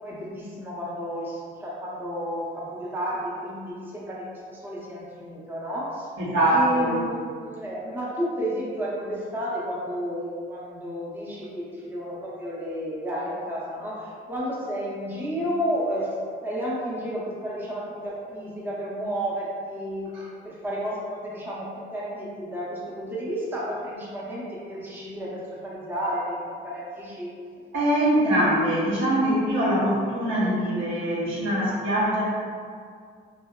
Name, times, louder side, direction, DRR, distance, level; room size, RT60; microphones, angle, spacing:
voice 1, 0.0-6.1 6.5-16.1 16.4-20.1 20.4-27.3, equal, 10° right, -6 dB, 0.6 m, -32 dB
voice 2, 6.2-7.0 20.1-20.3 27.7-32.2, right 1 dB, 85° right, -8 dB, 0.9 m, -23 dB
2.7 x 2.2 x 2.2 m, 2.1 s
cardioid pair, 90°, 20 cm